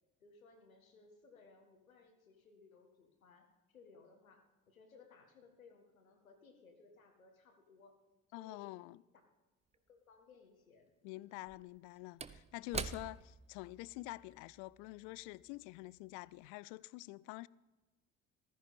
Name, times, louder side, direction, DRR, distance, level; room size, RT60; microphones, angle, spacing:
voice 1, 0.2-8.0 8.4-8.7 9.9-11.3, left 4 dB, 80° left, 1.7 m, -62 dB
voice 2, 8.3-9.0 11.0-17.5, left 21 dB, 50° left, 0.4 m, -47 dB
Slam / Wood, 9.7-9.8 11.3-16.0 16.3-16.5, right 5 dB, 15° right, 0.6 m, -47 dB
15.0 x 14.0 x 4.2 m
figure-of-eight pair, 55°, 41 cm